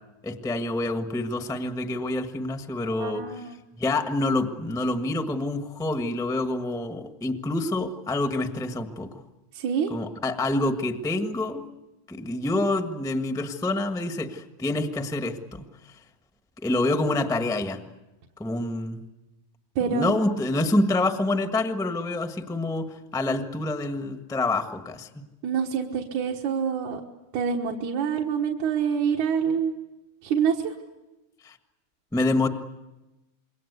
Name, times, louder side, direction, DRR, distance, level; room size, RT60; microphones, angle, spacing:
voice 1, 0.2-3.2 3.8-9.2 9.9-11.6 12.1-15.6 16.6-17.8 18.4-19.0 19.9-25.1 31.4-31.6 32.1-32.5, left 2 dB, 5° left, 6 dB, 0.5 m, -27 dB
voice 2, 3.0-3.6 9.5-9.9 19.8-20.1 25.4-27.0 27.3-29.8 30.2-30.7, right 7 dB, 85° right, 0 dB, 2.9 m, -26 dB
27.5 x 22.5 x 8.2 m, 1.0 s
omnidirectional pair, 3.3 m